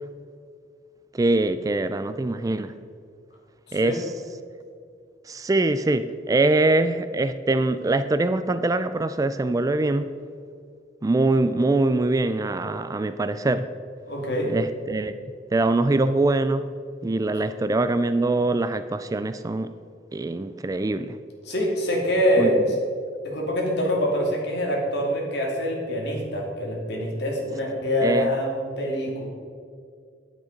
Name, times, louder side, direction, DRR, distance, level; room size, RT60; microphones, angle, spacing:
voice 1, 1.1-2.7 3.7-4.1 5.3-10.1 11.0-13.7 14.5-15.1 15.5-16.7 17.0-19.7 20.1-21.2 22.4-22.5 28.0-28.3, right 2 dB, 20° right, 12 dB, 0.3 m, -23 dB
voice 2, 14.1-14.5 21.5-22.6 23.2-29.2, equal, 65° left, -1 dB, 2.6 m, -25 dB
9.6 x 9.2 x 5.2 m, 2.2 s
head